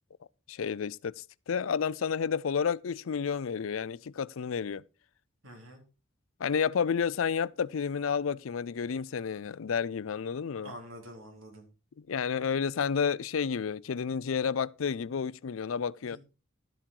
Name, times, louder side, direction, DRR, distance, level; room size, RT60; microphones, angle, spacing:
voice 1, 0.5-4.8 6.4-10.7 12.0-16.2, left 6 dB, 80° left, 0.5 m, -31 dB
voice 2, 5.4-5.8 10.6-11.6 16.0-16.2, equal, 90° right, 4.1 m, -46 dB
12.5 x 7.6 x 4.5 m
head